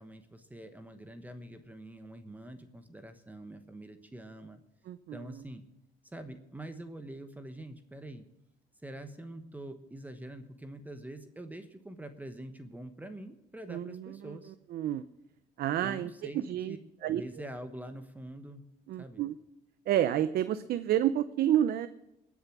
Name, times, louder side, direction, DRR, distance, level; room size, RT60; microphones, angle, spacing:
voice 1, 0.0-4.6 5.1-5.6 6.1-8.3 8.8-14.5 15.8-18.6 19.0-19.2, right 1 dB, 10° right, 8 dB, 1.2 m, -45 dB
voice 2, 4.9-5.4 13.7-15.0 15.6-16.8 17.0-17.2 18.9-19.4 19.9-21.9, right 11 dB, 65° right, 13 dB, 0.7 m, -30 dB
21.0 x 7.2 x 6.1 m, 0.91 s
cardioid pair, 110°, 17 cm